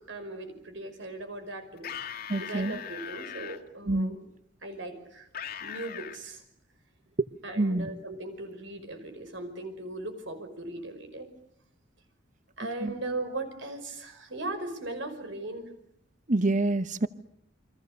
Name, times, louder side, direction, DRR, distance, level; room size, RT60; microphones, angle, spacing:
voice 1, 0.0-1.9 2.3-4.3 4.6-5.3 5.6-6.4 7.4-11.3 12.6-15.7, right 2 dB, 75° right, 8 dB, 5.6 m, -38 dB
sound 1, 1.8-3.6 5.3-6.2, left 8 dB, 50° left, 1.9 m, -39 dB
voice 2, 2.3-2.7 3.9-4.1 7.6-7.9 12.8-12.9 16.3-17.1, right 2 dB, 40° right, 13 dB, 1.0 m, -26 dB
29.5 x 24.0 x 6.7 m, 0.73 s
head